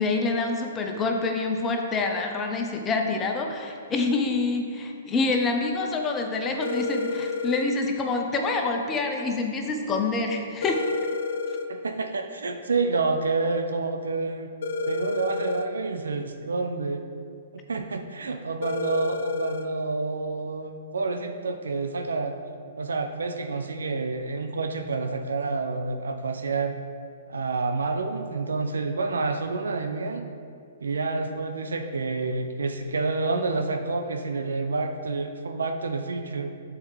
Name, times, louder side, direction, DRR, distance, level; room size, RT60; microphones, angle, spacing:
voice 1, 0.0-10.8, left 3 dB, 20° left, 3 dB, 0.6 m, -26 dB
sound 1, 6.6-7.7 10.6-11.7 14.6-15.7 18.6-19.7, left 4 dB, 65° left, 0.4 m, -29 dB
voice 2, 11.7-14.5 14.9-17.0 17.7-22.3 22.8-26.8 27.3-30.3 30.8-36.5, right 3 dB, 75° right, 5 dB, 0.4 m, -28 dB
7.1 x 4.2 x 3.3 m, 2.3 s
figure-of-eight pair, 120°, 0 cm